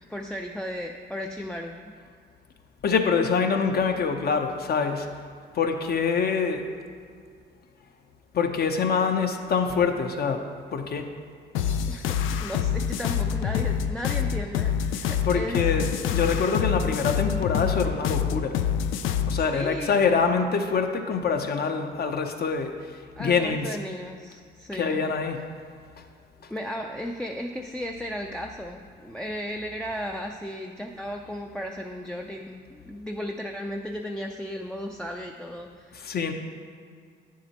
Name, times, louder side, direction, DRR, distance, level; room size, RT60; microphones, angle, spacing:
voice 1, 0.1-1.9 11.9-15.7 19.3-20.0 23.2-25.1 26.5-36.1, equal, 5° left, 1 dB, 0.4 m, -35 dB
voice 2, 2.8-5.1 5.5-6.6 8.3-10.4 10.7-11.1 15.2-18.5 19.3-22.7 23.2-23.8 24.7-25.4 35.9-36.3, left 5 dB, 50° left, 5 dB, 0.8 m, -25 dB
sound 1, 11.5-19.5, left 8 dB, 90° left, 0.4 m, -26 dB
9.1 x 7.4 x 3.0 m, 2.1 s
cardioid pair, 90°, 20 cm